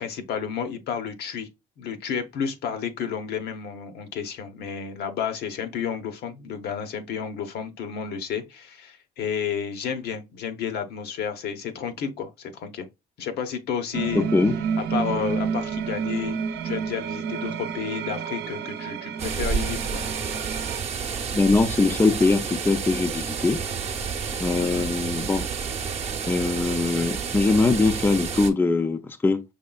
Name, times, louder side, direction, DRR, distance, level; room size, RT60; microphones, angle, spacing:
voice 1, 0.0-1.5 1.8-12.9 13.2-14.2 14.9-16.4 16.6-20.0 24.6-24.9, left 7 dB, 70° left, 0.9 m, -31 dB
sound 1, 13.9-20.8, right 6 dB, 75° right, 0.7 m, -30 dB
voice 2, 14.1-14.6 21.3-23.6 24.4-25.5 26.3-29.4, left 3 dB, 10° left, 0.4 m, -22 dB
sound 2, 19.2-28.5, right 6 dB, 40° right, 0.8 m, -30 dB
5.5 x 3.2 x 2.3 m
cardioid pair, 110°, 17 cm